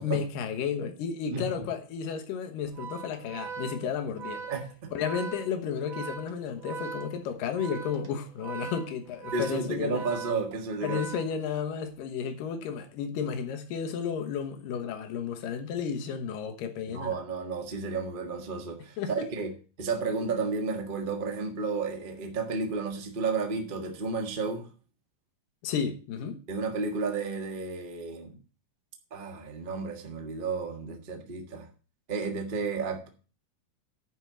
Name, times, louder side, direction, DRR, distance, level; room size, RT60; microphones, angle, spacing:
voice 1, 0.0-4.4 4.9-10.0 10.8-17.1 19.0-19.3 25.6-26.4, left 7 dB, 85° left, 2.8 m, -32 dB
Organ, 2.7-11.8, right 6 dB, 55° right, 2.4 m, -41 dB
voice 2, 4.5-4.9 9.3-11.0 16.9-19.5 19.8-24.7 26.5-28.3 29.1-31.7 32.1-33.1, right 4 dB, 35° right, 0.8 m, -32 dB
10.5 x 4.5 x 7.5 m
omnidirectional pair, 3.8 m